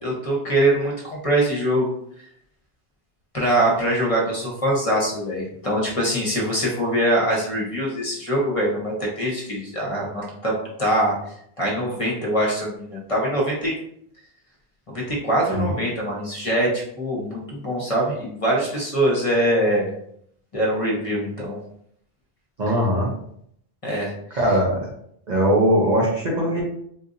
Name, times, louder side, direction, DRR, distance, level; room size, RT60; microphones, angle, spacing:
voice 1, 0.0-1.9 3.3-13.7 14.9-19.9 20.5-21.6 23.8-24.4, right 1 dB, 35° left, -3 dB, 0.9 m, -23 dB
voice 2, 22.6-23.1 24.4-24.8 25.3-26.6, equal, 45° right, -2 dB, 0.8 m, -20 dB
3.9 x 2.6 x 2.6 m, 0.69 s
omnidirectional pair, 1.1 m